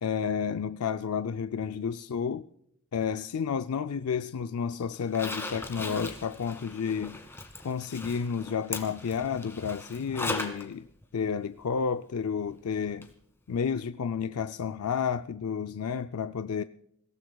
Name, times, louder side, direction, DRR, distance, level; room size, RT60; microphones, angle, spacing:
voice 1, 0.0-2.5 2.9-7.2 7.6-10.9 11.1-13.1 13.5-16.6, left 6 dB, 80° left, 0.4 m, -31 dB
Zipper (clothing), 5.0-10.6 11.0-11.1 13.0-13.1 13.5-13.6, left 2 dB, 10° left, 1.8 m, -38 dB
28.0 x 17.5 x 2.3 m
head